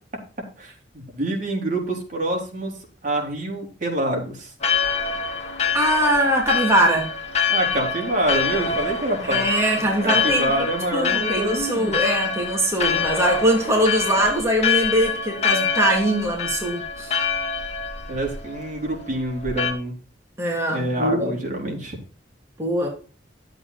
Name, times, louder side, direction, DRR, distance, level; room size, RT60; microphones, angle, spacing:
voice 1, 1.1-2.7 3.0-4.5 7.5-9.4 9.9-12.0 18.1-20.0 20.7-22.0, right 1 dB, 45° right, 4.0 m, -26 dB
Church bell, 4.6-19.7, left 5 dB, 35° left, 1.9 m, -26 dB
voice 2, 5.7-7.1 9.2-10.7 10.9-17.1 20.4-21.3 22.6-22.9, right 1 dB, 15° right, 2.6 m, -22 dB
12.0 x 7.9 x 4.1 m
head